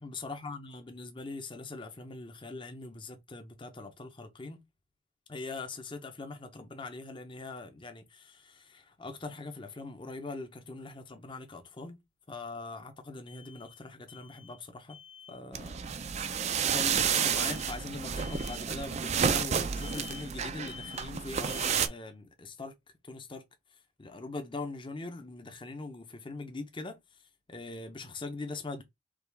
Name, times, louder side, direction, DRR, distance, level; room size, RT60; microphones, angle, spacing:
voice 1, 0.0-4.6 5.3-12.0 12.3-15.0 15.3-15.9 16.6-22.7 23.0-23.4 24.0-27.0 27.5-28.8, left 3 dB, 25° left, 0.7 m, -42 dB
sound 1, 10.0-10.1 13.3-13.8 14.1-14.6 14.9-15.4 16.5-17.0 17.3-17.8 18.2-18.7 19.8-20.4 20.6-21.2 21.4-22.0, left 8 dB, 80° left, 1.1 m, -49 dB
sound 2, 15.5-21.9, right 7 dB, 35° right, 0.4 m, -30 dB
4.9 x 2.4 x 3.5 m
head